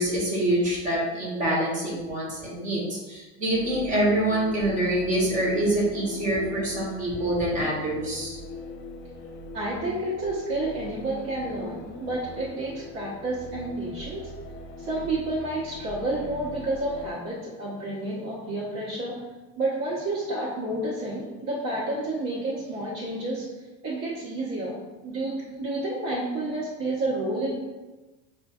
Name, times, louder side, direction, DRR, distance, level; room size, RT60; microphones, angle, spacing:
voice 1, 0.0-8.4, right 1 dB, 25° right, -5 dB, 1.0 m, -26 dB
sound 1, 3.5-17.1, left 2 dB, 40° left, 0.4 m, -41 dB
voice 2, 9.5-14.3 14.8-19.2 19.6-27.5, right 2 dB, 85° right, -9 dB, 1.1 m, -30 dB
5.9 x 2.4 x 2.4 m, 1.2 s
cardioid pair, 165°, 30 cm